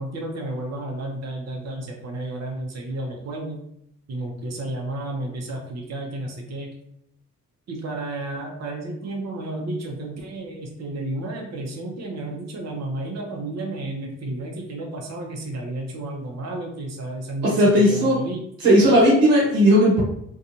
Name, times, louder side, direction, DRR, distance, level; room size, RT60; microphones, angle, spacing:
voice 1, 0.0-3.6 4.1-6.7 7.7-18.5, right 2 dB, 50° right, 1 dB, 0.8 m, -32 dB
voice 2, 17.4-18.2 18.6-20.0, equal, 85° right, -4 dB, 0.9 m, -16 dB
2.5 x 2.3 x 2.8 m, 0.73 s
hypercardioid pair, 45°, 35 cm